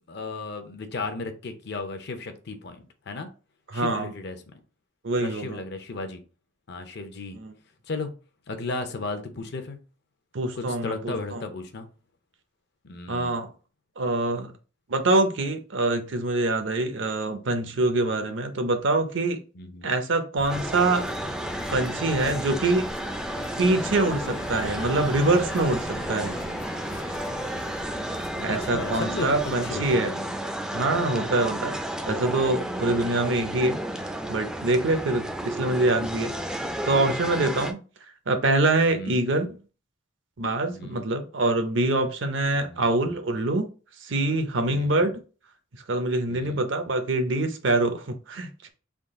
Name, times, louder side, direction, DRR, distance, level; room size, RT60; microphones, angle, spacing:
voice 1, 0.1-3.3 3.7-4.4 5.2-6.2 6.7-7.4 7.9-8.1 8.5-9.8 10.6-11.9 12.8-13.4 19.5-19.9 28.5-30.3 38.9-39.2 40.7-41.1 42.6-42.8 44.7-45.0 46.3-46.6, left 3 dB, 60° left, 0.6 m, -35 dB
voice 2, 3.7-4.1 5.0-5.6 7.3-7.5 10.3-11.4 13.1-13.5 14.0-14.5 14.9-19.4 19.8-21.1 21.7-22.9 23.6-26.4 28.4-30.1 30.7-31.8 32.1-37.8 38.3-39.5 40.4-43.7 44.0-45.1 45.9-48.7, right 2 dB, 65° right, 0.6 m, -25 dB
sound 1, 20.4-29.9, left 2 dB, 75° left, 1.0 m, -40 dB
sound 2, 20.5-37.7, right 1 dB, 5° right, 0.3 m, -32 dB
3.6 x 2.3 x 3.6 m
head